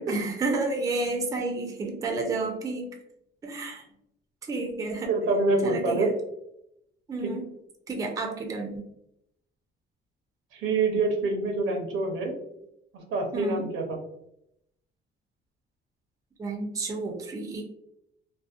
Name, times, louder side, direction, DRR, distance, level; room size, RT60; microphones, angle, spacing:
voice 1, 0.1-2.9 3.4-3.8 4.4-5.1 5.6-6.1 7.1-7.5 7.9-8.8 13.3-13.7 16.4-17.6, right 3 dB, 15° right, 1 dB, 0.4 m, -30 dB
voice 2, 5.1-6.1 7.2-7.3 10.5-12.3 12.9-14.0, right 3 dB, 85° right, 2 dB, 0.7 m, -26 dB
2.6 x 2.0 x 2.4 m, 0.78 s
cardioid pair, 150°, 20 cm